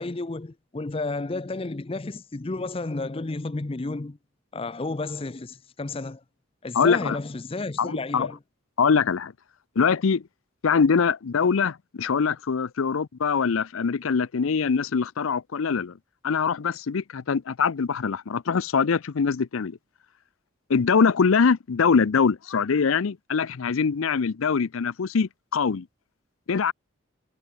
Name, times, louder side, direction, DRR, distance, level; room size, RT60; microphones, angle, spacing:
voice 1, 0.0-4.2 4.5-6.2 6.6-8.4, left 2 dB, 25° left, 0.5 m, -32 dB
voice 2, 6.7-7.2 7.8-8.3 8.8-9.3 9.8-10.2 10.6-16.0 16.2-19.8 20.7-25.9 26.5-26.7, left 5 dB, 80° left, 0.5 m, -23 dB
head